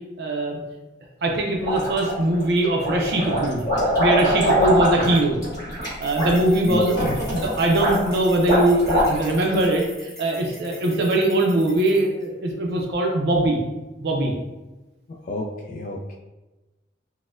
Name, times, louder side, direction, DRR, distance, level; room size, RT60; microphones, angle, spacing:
voice 1, 0.2-0.6 1.2-3.6 4.0-5.4 6.0-13.6 14.0-14.3, right 1 dB, 60° right, 0 dB, 0.5 m, -21 dB
sound 1, 1.6-2.4 2.8-9.5, equal, 20° left, 1.4 m, -23 dB
sound 2, 5.8-12.3, equal, ahead, 0.7 m, -43 dB
voice 2, 6.7-7.2 15.2-16.2, left 2 dB, 45° left, -1 dB, 0.3 m, -30 dB
4.1 x 2.1 x 2.4 m, 1.1 s
head